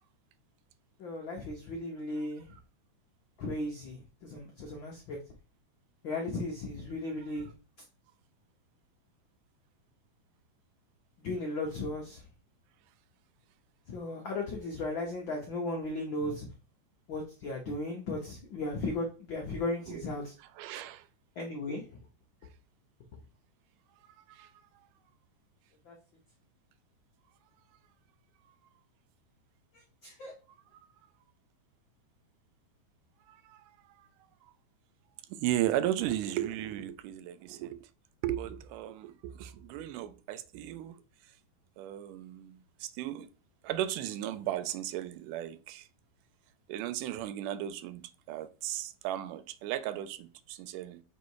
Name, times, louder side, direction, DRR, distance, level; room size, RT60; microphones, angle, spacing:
voice 1, 1.0-2.5 3.4-5.2 6.0-7.5 11.2-12.2 13.9-16.5 17.1-20.3 21.4-21.8 25.9-26.0 30.0-30.3, left 2 dB, 80° left, 1.0 m, -36 dB
voice 2, 20.6-21.1 24.2-24.5 33.3-34.1 35.3-37.9 38.2-41.3 41.8-43.3 43.6-45.9 46.7-51.0, right 12 dB, 85° right, 2.1 m, -36 dB
6.7 x 3.1 x 4.7 m
omnidirectional pair, 3.6 m